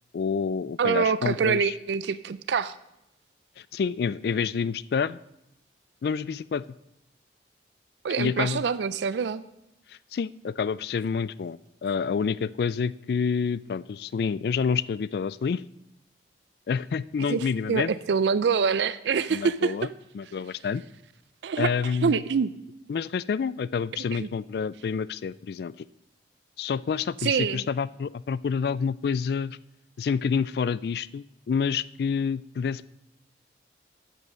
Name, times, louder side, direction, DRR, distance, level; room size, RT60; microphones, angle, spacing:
voice 1, 0.1-1.7 3.6-5.2 6.0-6.6 8.2-8.6 9.9-15.6 16.7-17.9 19.3-19.9 20.1-20.8 21.6-22.2 22.9-25.7 26.6-29.6 30.0-32.9, left 6 dB, 60° left, 19 dB, 0.3 m, -28 dB
voice 2, 0.8-2.7 8.0-9.4 17.3-19.7 21.4-22.5 24.1-24.3 27.2-27.6, right 6 dB, 75° right, 15 dB, 0.4 m, -25 dB
13.5 x 5.5 x 6.2 m, 0.84 s
head